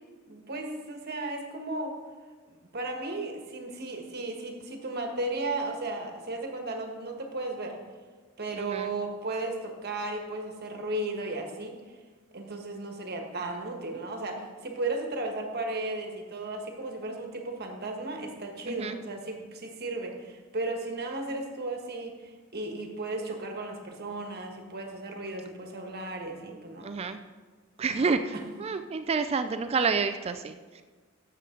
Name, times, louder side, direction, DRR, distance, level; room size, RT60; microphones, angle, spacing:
voice 1, 0.3-2.0 2.5-7.8 8.4-11.8 12.3-26.9 27.9-28.4, right 2 dB, 50° right, 3 dB, 1.4 m, -35 dB
voice 2, 8.5-9.0 18.7-19.0 26.8-27.2 27.8-30.8, right 4 dB, 30° right, 9 dB, 0.3 m, -29 dB
12.0 x 7.6 x 3.8 m, 1.4 s
head